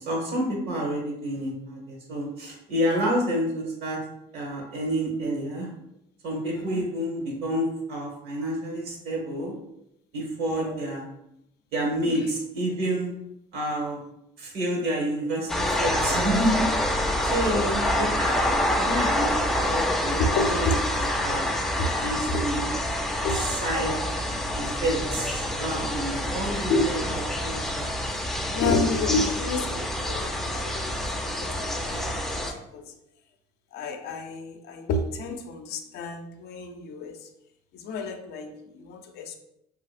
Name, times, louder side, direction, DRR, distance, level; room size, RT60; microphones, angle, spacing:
voice 1, 0.0-4.0 4.3-5.7 6.2-9.5 10.1-11.0 11.7-13.1 13.5-14.0 14.4-18.4 18.8-20.2 20.5-20.7 20.9-21.5 22.0-22.7 23.4-23.9 24.5-27.9, right 1 dB, 70° right, -1 dB, 1.1 m, -29 dB
voice 2, 6.5-6.8 10.5-10.8 12.0-12.3 20.2-20.8 21.8-21.9 22.3-22.4 23.2-24.0 24.6-24.7 26.0-26.2 26.7-26.9 28.5-32.5 32.7-32.9 33.7-37.3 37.7-39.4, left 2 dB, 70° left, 6 dB, 0.4 m, -30 dB
sound 1, 15.5-32.5, left 1 dB, ahead, 0.4 m, -27 dB
2.8 x 2.7 x 2.4 m, 0.81 s
cardioid pair, 110°, 17 cm